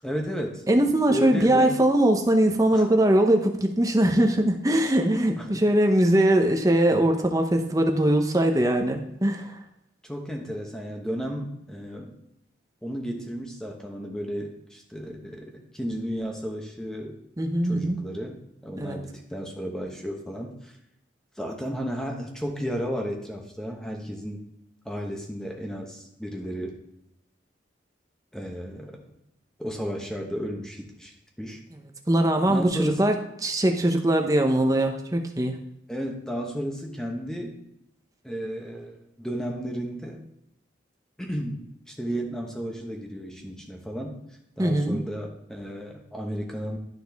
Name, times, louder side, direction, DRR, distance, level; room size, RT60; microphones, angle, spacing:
voice 1, 0.0-0.6 1.1-1.8 2.7-2.8 5.4-5.6 10.1-12.1 12.8-17.2 17.6-18.4 18.6-20.7 21.4-24.4 24.8-26.8 28.3-29.0 29.6-31.6 32.5-33.1 35.9-37.6 38.2-40.2 41.2-44.2 44.6-46.8, equal, 5° left, 1 dB, 1.0 m, -33 dB
voice 2, 0.7-9.6 17.4-18.0 18.8-19.0 32.1-33.2 33.4-35.6 44.6-45.0, right 1 dB, 20° right, 4 dB, 0.7 m, -21 dB
11.5 x 4.2 x 3.5 m, 0.83 s
head